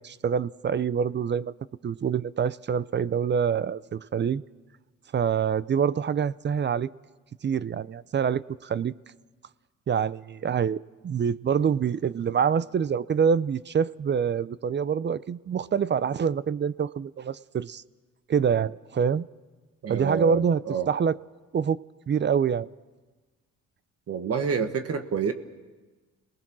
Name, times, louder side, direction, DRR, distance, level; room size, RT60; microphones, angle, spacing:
voice 1, 0.0-1.5 1.8-4.4 5.1-6.9 7.4-8.9 9.9-10.8 11.0-17.8 18.3-19.3 19.9-20.6 20.9-21.1 21.5-21.8 22.1-22.7, right 7 dB, 35° right, 18 dB, 0.6 m, -26 dB
voice 2, 19.8-20.9 24.1-25.3, right 6 dB, 50° right, 8 dB, 1.5 m, -28 dB
26.5 x 19.5 x 6.2 m, 1.3 s
cardioid pair, 90°, 30 cm